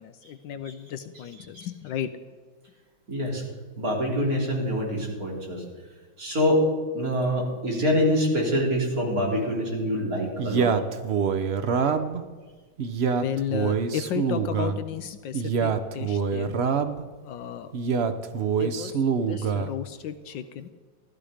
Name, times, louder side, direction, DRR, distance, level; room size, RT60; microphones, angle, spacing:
voice 1, 0.0-2.1 13.2-16.5 17.2-17.7 18.6-20.7, left 9 dB, 75° left, 10 dB, 1.3 m, -34 dB
voice 2, 1.4-1.7 3.1-3.4 3.8-5.6 6.2-6.7 6.9-10.8 19.3-19.4, equal, 45° right, -2 dB, 3.9 m, -25 dB
Male speech man speaking, 10.4-12.2 12.8-14.8 15.3-17.0 17.7-19.7, right 6 dB, 80° right, 0.5 m, -25 dB
15.5 x 12.5 x 5.0 m, 1.4 s
omnidirectional pair, 2.2 m